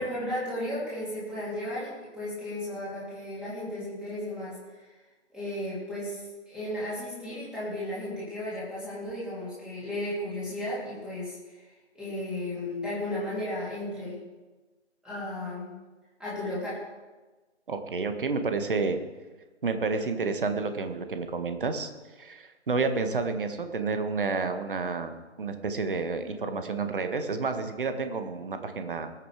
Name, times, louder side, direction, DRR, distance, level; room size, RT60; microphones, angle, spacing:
voice 1, 0.0-4.9 5.3-11.6 11.9-14.2 15.0-15.7 16.2-16.8, left 1 dB, ahead, -9 dB, 3.0 m, -34 dB
voice 2, 17.7-19.0 19.6-21.9 22.2-29.1, right 4 dB, 50° right, 7 dB, 1.4 m, -30 dB
19.0 x 6.8 x 4.9 m, 1.2 s
figure-of-eight pair, 150°, 35 cm